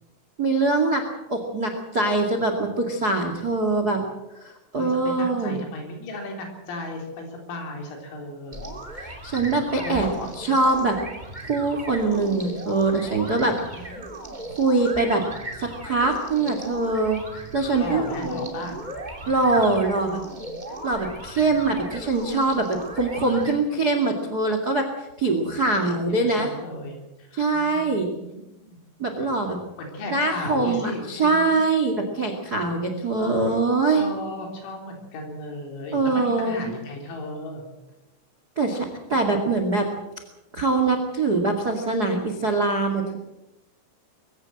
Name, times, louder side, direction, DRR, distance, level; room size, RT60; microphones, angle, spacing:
voice 1, 0.4-1.0 1.3-4.0 4.3-5.6 9.0-10.1 10.4-11.0 11.5-13.5 14.6-15.2 15.6-18.5 19.3-20.2 20.8-24.9 25.2-26.5 27.3-28.1 29.0-29.6 30.1-34.0 35.9-36.7 38.5-39.9 40.5-43.2, right 3 dB, 50° right, 5 dB, 1.1 m, -23 dB
voice 2, 4.8-8.7 9.8-10.4 13.7-14.1 17.8-18.8 21.5-21.6 25.9-27.4 27.7-28.8 29.8-31.6 33.2-33.6 33.8-37.7, left 2 dB, 85° left, 2 dB, 6.2 m, -35 dB
sound 1, 8.5-23.5, right 1 dB, 20° right, 1.3 m, -37 dB
23.0 x 16.0 x 7.8 m, 0.97 s
omnidirectional pair, 5.9 m